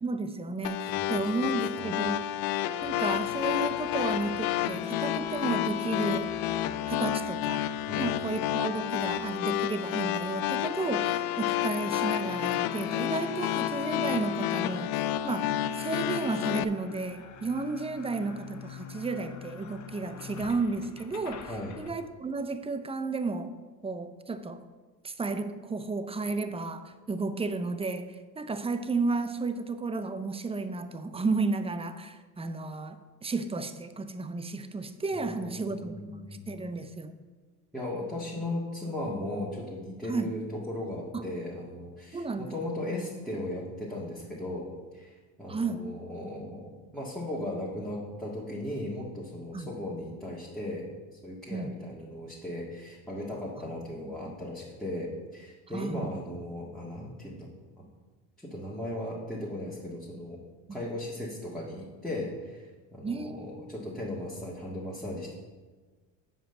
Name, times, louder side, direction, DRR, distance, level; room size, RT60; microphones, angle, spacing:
voice 1, 0.0-2.3 2.8-6.4 6.9-7.7 8.0-21.5 21.8-23.5 23.8-24.6 25.0-37.2 40.1-40.3 41.1-41.3 42.1-42.5 45.5-45.9 49.5-49.7 51.5-51.7 53.6-53.7 54.0-54.3 55.7-56.0 60.7-60.8 63.0-63.7, right 3 dB, 15° right, 10 dB, 0.7 m, -33 dB
sound 1, 0.6-16.6, left 12 dB, 60° left, 0.5 m, -30 dB
voice 2, 0.9-1.3 1.8-2.0 7.9-8.1 21.5-21.7 35.1-36.5 37.7-57.8 58.4-60.4 60.7-62.7 62.9-65.3, left 1 dB, ahead, -6 dB, 1.9 m, -37 dB
sound 2, 2.8-10.8 11.8-21.9, left 7 dB, 45° left, 1.1 m, -48 dB
7.5 x 5.2 x 6.9 m, 1.4 s
supercardioid pair, 90°, 41 cm